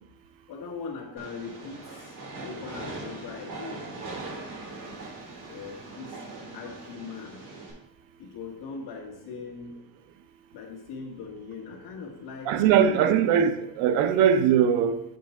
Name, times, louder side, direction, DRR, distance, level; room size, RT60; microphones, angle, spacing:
voice 1, 0.5-4.2 5.5-6.2 6.5-7.4 8.2-9.8 10.5-12.6 13.0-13.1, left 5 dB, 55° left, 1.5 m, -40 dB
Train, 1.2-7.7, right 2 dB, 55° right, 3.1 m, -40 dB
voice 2, 12.5-15.0, right 8 dB, 75° right, 0.7 m, -21 dB
7.7 x 4.6 x 4.4 m
cardioid pair, 170°, 47 cm